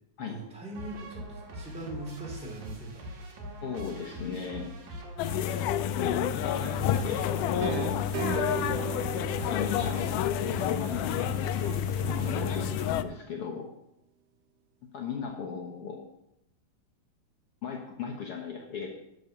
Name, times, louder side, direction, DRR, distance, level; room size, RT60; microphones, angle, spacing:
voice 1, 0.3-3.1 12.0-12.3, right 2 dB, ahead, -2 dB, 2.5 m, -41 dB
sound 1, 0.7-13.1, equal, 60° right, 3.1 m, -42 dB
voice 2, 3.6-4.7 5.9-8.1 9.5-11.3 12.1-13.7 14.9-16.0 17.6-19.0, left 6 dB, 60° left, 0 dB, 1.5 m, -37 dB
sound 2, 5.2-13.0, left 10 dB, 85° left, 1.8 m, -29 dB
sound 3, 6.5-12.2, right 12 dB, 90° right, 2.4 m, -39 dB
12.0 x 5.9 x 6.6 m, 0.82 s
omnidirectional pair, 4.1 m